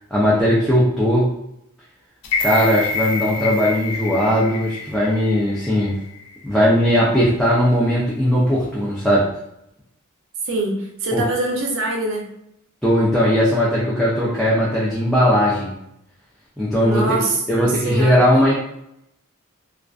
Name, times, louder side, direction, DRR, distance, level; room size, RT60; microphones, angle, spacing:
voice 1, 0.1-1.3 2.4-6.0 6.4-9.3 11.1-11.2 12.8-15.7 16.6-17.2 17.5-18.5, equal, ahead, -8 dB, 0.4 m, -18 dB
sound 1, 2.2-6.4 6.8-6.9, left 4 dB, 85° left, 0.4 m, -27 dB
voice 2, 10.5-12.3 16.8-18.2, right 2 dB, 60° right, 1 dB, 0.5 m, -24 dB
2.3 x 2.3 x 2.3 m, 0.80 s
head